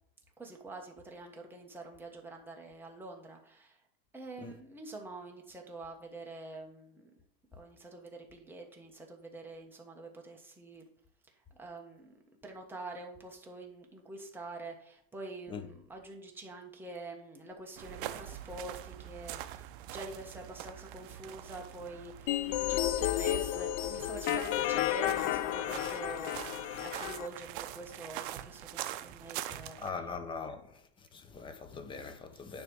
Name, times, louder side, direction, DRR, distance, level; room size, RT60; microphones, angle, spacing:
voice 1, 0.4-3.8 4.1-7.1 7.5-10.8 11.4-12.1 12.4-30.0, right 2 dB, 5° right, 1.3 m, -46 dB
sound 1, 17.8-29.9, right 13 dB, 60° right, 0.6 m, -44 dB
sound 2, 22.3-27.3, left 13 dB, 40° left, 0.5 m, -32 dB
voice 2, 29.8-30.8 31.1-32.6, left 5 dB, 15° left, 0.8 m, -41 dB
9.8 x 3.4 x 6.2 m
supercardioid pair, 145°, 30 cm